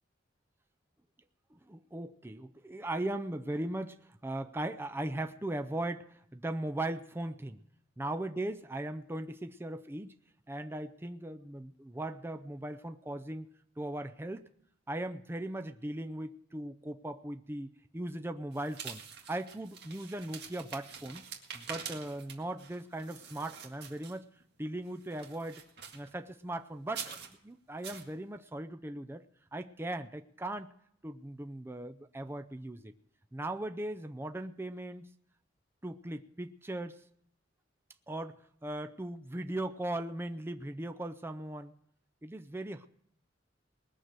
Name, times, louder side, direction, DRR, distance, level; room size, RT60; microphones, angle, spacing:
voice 1, 1.5-7.6 8.0-10.2 10.5-13.5 13.8-14.5 14.9-19.0 19.3-21.3 21.5-24.3 24.6-25.6 25.9-27.2 27.4-29.2 29.5-30.7 31.0-32.9 33.3-35.1 35.8-37.0 38.1-38.4 38.6-41.7 42.2-42.9, right 1 dB, 10° right, 8 dB, 0.5 m, -38 dB
sound 1, 18.5-24.4 24.9-26.1 26.9-27.3 27.8-28.1, right 6 dB, 60° right, 1.9 m, -46 dB
20.0 x 6.6 x 7.5 m, 0.69 s
head